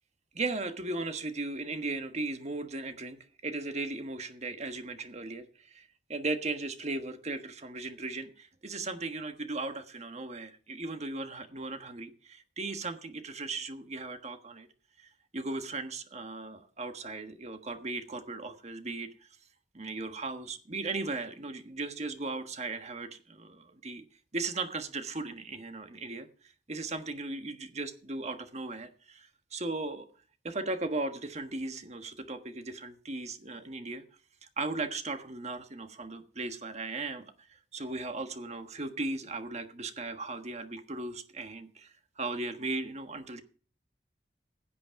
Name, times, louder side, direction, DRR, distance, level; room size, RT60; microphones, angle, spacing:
voice 1, 0.3-14.7 15.0-19.1 19.7-24.0 24.3-26.3 26.7-30.1 30.4-34.0 34.4-37.3 37.7-43.4, right 3 dB, 40° right, 8 dB, 1.4 m, -37 dB
16.0 x 8.5 x 4.7 m, 0.40 s
head